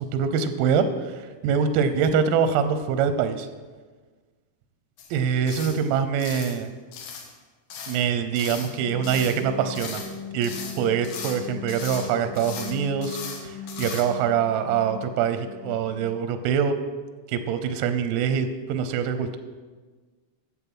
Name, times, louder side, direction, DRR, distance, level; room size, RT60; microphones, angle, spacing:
voice 1, 0.0-3.5 5.1-6.7 7.9-10.0 10.3-16.8 17.3-19.4, right 7 dB, 90° right, 10 dB, 3.5 m, -24 dB
sound 1, 5.0-5.1 5.5-5.8 6.2-6.6 6.9-7.3 7.7-8.0 8.3-8.7 9.0-9.4 9.7-10.1 10.4-11.4 11.7-12.1 12.3-12.7 13.0-13.4 13.7-14.0, left 6 dB, 70° left, 2.2 m, -37 dB
sound 2, 8.5-16.3, left 4 dB, 90° left, 2.3 m, -39 dB
12.0 x 7.3 x 6.1 m, 1.4 s
omnidirectional pair, 6.0 m